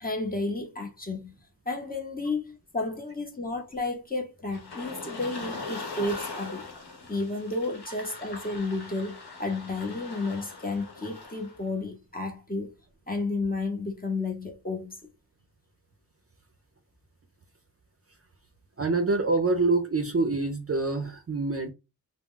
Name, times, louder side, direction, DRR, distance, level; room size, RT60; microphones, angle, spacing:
voice 1, 0.0-1.3 1.7-6.6 7.1-12.7 13.1-15.0, left 3 dB, 25° left, 0.8 m, -32 dB
sound 1, 4.5-11.6, left 3 dB, 80° left, 0.9 m, -41 dB
voice 2, 18.8-21.7, right 3 dB, 40° right, 0.4 m, -26 dB
2.2 x 2.0 x 3.7 m
wide cardioid pair, 65°, 38 cm